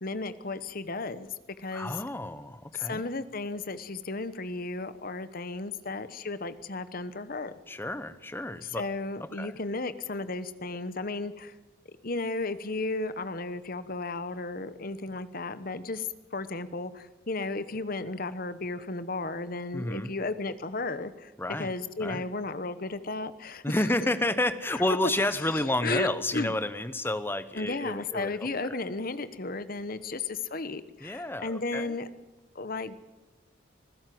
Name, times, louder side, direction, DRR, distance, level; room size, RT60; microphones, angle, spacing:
voice 1, 0.0-1.3 1.6-2.0 2.7-7.5 8.6-11.5 12.0-21.3 21.6-23.8 24.7-24.8 25.5-26.1 26.3-26.5 27.5-32.1 32.5-33.0, left 3 dB, 45° left, 13 dB, 1.1 m, -34 dB
voice 2, 1.7-3.0 7.7-8.8 9.2-9.5 19.7-20.1 21.4-21.7 22.0-22.2 23.6-28.8 31.0-32.0, left 1 dB, 10° left, 13 dB, 0.9 m, -30 dB
25.5 x 16.0 x 7.7 m, 1.1 s
head